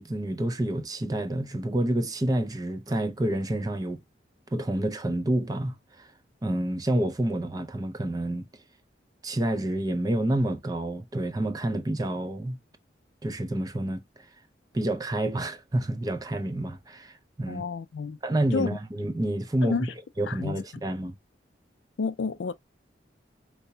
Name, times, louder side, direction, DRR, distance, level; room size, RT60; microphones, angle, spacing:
voice 1, 0.0-4.0 4.5-6.1 6.4-8.5 9.2-12.6 13.2-14.0 14.7-17.6 18.2-19.9 20.2-21.1, right 1 dB, 20° right, 0.4 m, -28 dB
voice 2, 17.5-18.2 18.5-18.8 19.6-19.9 20.3-20.6 22.0-22.5, left 5 dB, 80° left, 0.4 m, -30 dB
4.5 x 2.0 x 2.7 m
head